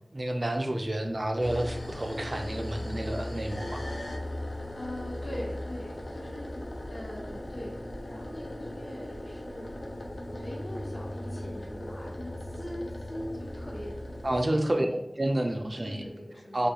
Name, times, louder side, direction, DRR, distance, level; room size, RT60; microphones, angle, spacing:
voice 1, 0.1-3.8 14.2-14.9 15.2-16.1 16.5-16.7, right 1 dB, 50° right, 4 dB, 0.3 m, -29 dB
sound 1, 1.4-14.4, left 1 dB, 85° left, 0.4 m, -38 dB
voice 2, 4.7-9.7 10.3-14.0 14.4-15.1 15.8-16.7, left 1 dB, 65° left, -4 dB, 0.8 m, -42 dB
2.3 x 2.2 x 2.8 m, 0.87 s
wide cardioid pair, 50°, 0 cm